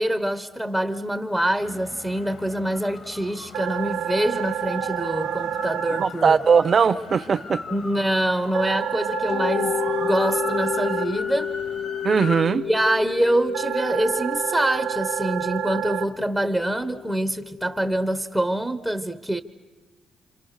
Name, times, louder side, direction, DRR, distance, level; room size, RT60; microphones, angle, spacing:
voice 1, 0.0-6.4 7.7-11.5 12.6-19.4, right 1 dB, ahead, 0.9 m, -25 dB
sound 1, 1.6-12.4, left 4 dB, 50° left, 2.2 m, -37 dB
sound 2, 3.5-6.0 8.5-11.0 13.5-16.0, right 10 dB, 70° right, 1.0 m, -28 dB
voice 2, 6.0-7.6 12.0-12.7, right 6 dB, 45° right, 0.9 m, -19 dB
Mallet percussion, 9.3-18.0, left 9 dB, 80° left, 6.0 m, -32 dB
28.5 x 27.0 x 6.6 m
cardioid pair, 90°, 0 cm